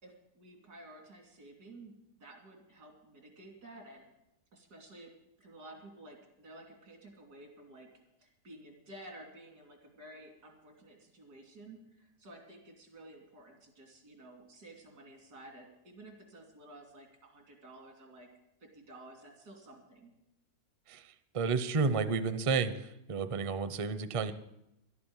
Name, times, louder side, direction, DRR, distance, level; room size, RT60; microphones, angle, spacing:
voice 1, 0.0-4.1 4.5-5.1 5.4-7.9 8.2-18.3 18.6-20.1, right 1 dB, 90° right, 2 dB, 3.5 m, -53 dB
voice 2, 21.3-24.3, right 4 dB, 40° right, 12 dB, 0.4 m, -31 dB
12.0 x 8.6 x 8.8 m, 0.84 s
omnidirectional pair, 1.7 m